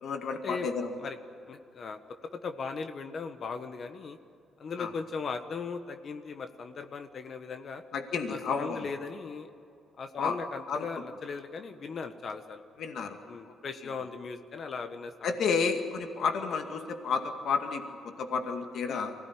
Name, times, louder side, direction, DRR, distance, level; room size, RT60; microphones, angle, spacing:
voice 1, 0.0-0.9 4.8-4.9 7.9-8.9 10.2-10.3 10.7-10.9 12.8-13.2 15.2-19.1, left 5 dB, 70° left, 5 dB, 2.2 m, -31 dB
voice 2, 1.5-2.0 2.3-4.2 4.6-7.8 8.3-9.5 10.0-12.6 13.3-15.4 18.9-19.1, left 5 dB, 50° left, 7 dB, 1.4 m, -38 dB
24.0 x 17.5 x 9.9 m, 2.5 s
cardioid pair, 90°, 0 cm